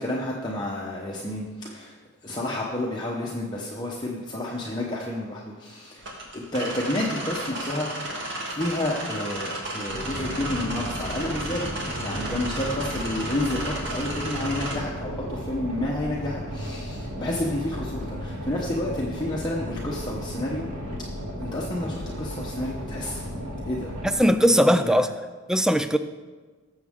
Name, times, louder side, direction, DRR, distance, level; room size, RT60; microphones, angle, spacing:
voice 1, 0.0-2.0 2.2-6.0 6.3-7.9 8.5-11.7 12.0-20.7 21.4-23.2 23.7-23.9 24.7-25.0, left 1 dB, 20° left, -4 dB, 1.0 m, -30 dB
sound 1, 6.0-14.8, right 1 dB, 55° right, 2.4 m, -33 dB
Boat Water vehicle, 9.8-24.1, equal, 90° right, 2.7 m, -35 dB
voice 2, 24.0-26.0, equal, 5° right, 10 dB, 0.3 m, -20 dB
19.5 x 7.3 x 3.7 m, 1.4 s
head